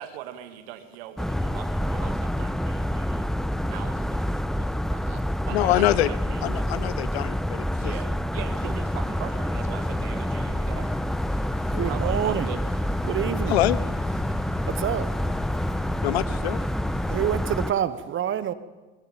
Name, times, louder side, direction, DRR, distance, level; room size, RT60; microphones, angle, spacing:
voice 1, 0.0-3.3 3.6-6.7 7.8-10.9 11.8-12.6, right 11 dB, 70° right, 2.3 m, -41 dB
sound 1, 1.2-17.7, left 1 dB, ahead, 0.7 m, -27 dB
voice 2, 5.5-6.1 6.4-7.9 11.7-11.9 13.5-13.8 16.0-16.6, left 15 dB, 80° left, 1.0 m, -24 dB
sound 2, 8.3-17.2, left 1 dB, 20° left, 6.4 m, -45 dB
voice 3, 11.7-12.5 13.0-13.6 14.7-15.2 17.1-18.5, right 10 dB, 40° right, 1.3 m, -27 dB
23.5 x 22.0 x 5.3 m
hypercardioid pair, 80°, 31 cm